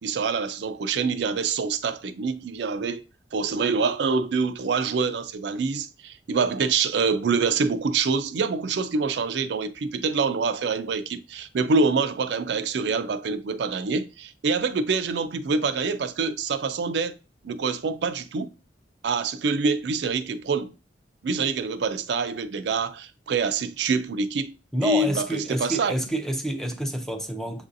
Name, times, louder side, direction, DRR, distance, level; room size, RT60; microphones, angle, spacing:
voice 1, 0.0-3.0 3.3-17.2 17.4-18.5 19.0-20.7 21.2-24.5 24.8-25.9, right 4 dB, 70° right, 0.4 m, -26 dB
voice 2, 24.7-27.6, right 1 dB, 5° left, 0.5 m, -28 dB
7.1 x 2.6 x 2.6 m
head